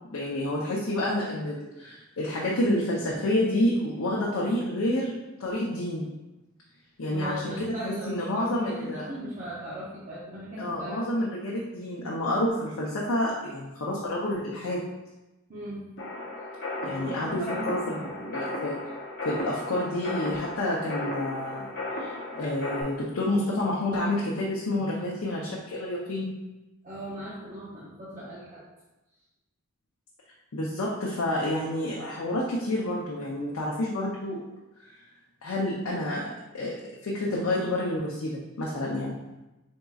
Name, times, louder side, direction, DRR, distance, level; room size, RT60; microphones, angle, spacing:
voice 1, 0.1-5.1 5.4-6.1 7.0-7.5 7.8-9.1 10.6-14.8 16.8-17.4 17.7-18.8 19.2-21.7 22.0-26.3 30.5-34.4 35.4-36.7 37.0-39.2, left 1 dB, 90° left, -4 dB, 0.6 m, -29 dB
voice 2, 7.1-11.0 15.5-15.8 16.8-18.1 26.8-28.6, right 1 dB, 40° right, -8 dB, 0.7 m, -38 dB
sound 1, 16.0-22.8, left 2 dB, 60° left, 0.8 m, -35 dB
4.0 x 3.6 x 2.4 m, 1.0 s
head